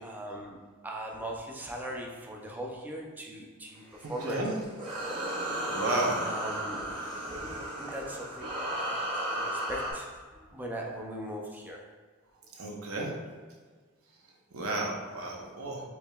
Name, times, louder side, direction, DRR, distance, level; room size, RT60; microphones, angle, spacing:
voice 1, 0.0-3.8 4.1-4.6 6.2-7.0 7.3-11.9 15.3-15.4, right 1 dB, 10° right, -1 dB, 0.4 m, -40 dB
sound 1, 3.9-9.9, right 1 dB, 25° right, 1.1 m, -34 dB
voice 2, 4.2-4.5 5.7-6.3 12.6-13.1 14.5-15.8, right 2 dB, 90° right, -1 dB, 0.7 m, -32 dB
4.7 x 2.8 x 2.3 m, 1.5 s
head